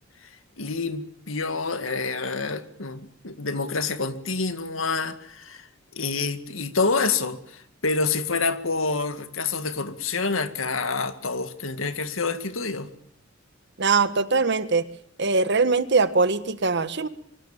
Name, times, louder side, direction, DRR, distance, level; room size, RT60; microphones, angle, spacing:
voice 1, 0.6-5.7 5.9-12.9, left 4 dB, 90° left, 2.1 m, -27 dB
voice 2, 13.8-14.8 15.2-17.1, right 4 dB, 60° right, 1.5 m, -22 dB
24.5 x 24.0 x 7.3 m
head